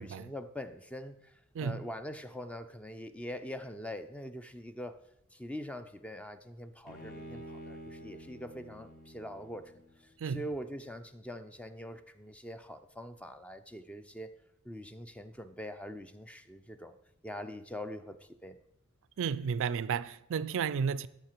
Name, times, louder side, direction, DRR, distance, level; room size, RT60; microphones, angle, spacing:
voice 1, 0.0-5.0 5.3-9.7 10.0-14.3 14.6-17.0 17.2-18.6, equal, 5° left, 0.4 m, -43 dB
Bowed string instrument, 6.9-10.1, equal, 40° left, 1.0 m, -49 dB
voice 2, 19.2-21.1, right 6 dB, 60° right, 0.4 m, -32 dB
12.0 x 5.8 x 4.5 m
head